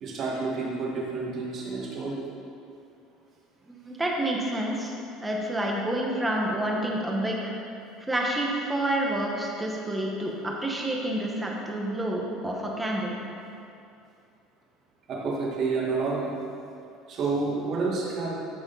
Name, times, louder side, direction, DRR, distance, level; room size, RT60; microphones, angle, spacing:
voice 1, 0.0-2.2 15.1-16.3 17.1-18.4, right 4 dB, 50° right, -4 dB, 2.3 m, -29 dB
voice 2, 3.7-7.5 8.1-13.1, right 1 dB, 10° right, -2 dB, 1.5 m, -29 dB
13.0 x 4.8 x 4.2 m, 2.6 s
supercardioid pair, 105°, 0 cm